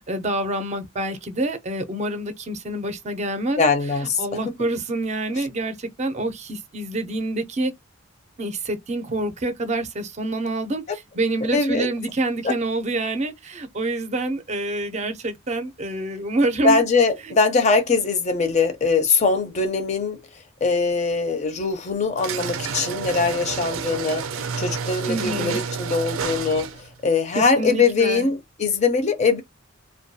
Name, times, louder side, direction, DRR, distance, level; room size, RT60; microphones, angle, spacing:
voice 1, 0.1-3.6 4.2-7.7 8.4-16.8 17.3-17.4 25.1-25.6 27.4-28.3, right 2 dB, 35° right, 0.5 m, -27 dB
voice 2, 3.6-4.5 5.3-5.4 11.5-11.9 12.4-12.5 16.6-20.2 20.6-29.4, left 4 dB, 35° left, 0.4 m, -22 dB
sound 1, 22.2-26.9, right 6 dB, 85° right, 0.5 m, -29 dB
2.2 x 2.2 x 2.6 m
head